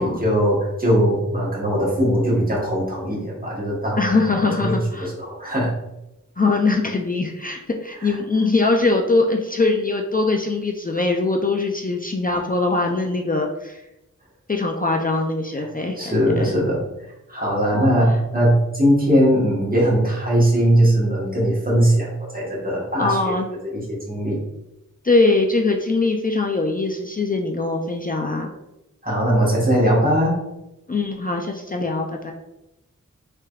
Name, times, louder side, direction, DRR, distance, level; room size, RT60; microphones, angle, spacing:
voice 1, 0.0-5.7 8.0-8.1 15.9-16.8 17.3-23.3 23.6-24.4 29.0-30.3, equal, 25° right, -5 dB, 1.2 m, -20 dB
voice 2, 4.0-5.1 6.4-13.8 14.5-16.5 17.7-17.9 23.0-23.5 25.0-28.5 30.9-32.3, left 3 dB, 30° left, 1 dB, 0.3 m, -22 dB
3.6 x 3.3 x 2.3 m, 0.90 s
wide cardioid pair, 75°, 32 cm